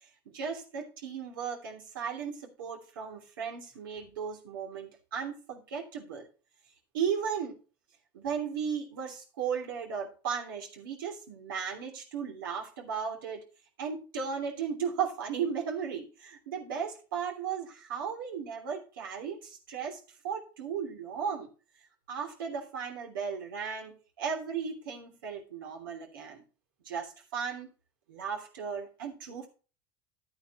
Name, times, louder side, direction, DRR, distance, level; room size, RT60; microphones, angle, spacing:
voice 1, 0.3-6.3 6.9-7.6 8.1-13.4 13.8-20.0 20.2-21.5 22.1-26.4 26.8-27.7 28.1-29.5, right 7 dB, 85° right, 2 dB, 3.0 m, -36 dB
12.5 x 9.0 x 3.0 m, 0.35 s
hypercardioid pair, 80°, 11 cm